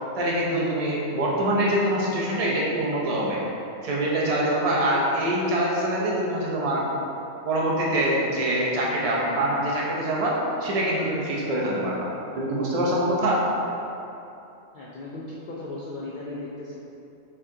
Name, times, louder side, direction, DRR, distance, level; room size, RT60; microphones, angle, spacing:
voice 1, 0.2-3.4 3.8-6.9 7.4-12.1 12.4-13.4, right 1 dB, 40° right, -4 dB, 0.5 m, -24 dB
voice 2, 14.7-16.8, left 2 dB, 85° left, -6 dB, 0.4 m, -36 dB
4.6 x 2.7 x 3.5 m, 2.8 s
omnidirectional pair, 1.4 m